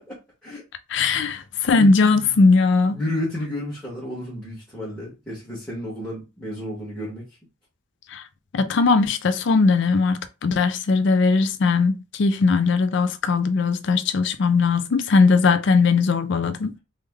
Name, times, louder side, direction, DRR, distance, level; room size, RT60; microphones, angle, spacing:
voice 1, 0.9-3.0 8.1-8.2 8.5-16.7, left 4 dB, 60° left, 0.4 m, -19 dB
voice 2, 1.7-2.3 2.8-7.2, left 1 dB, 5° left, 1.1 m, -31 dB
3.3 x 2.1 x 3.4 m
head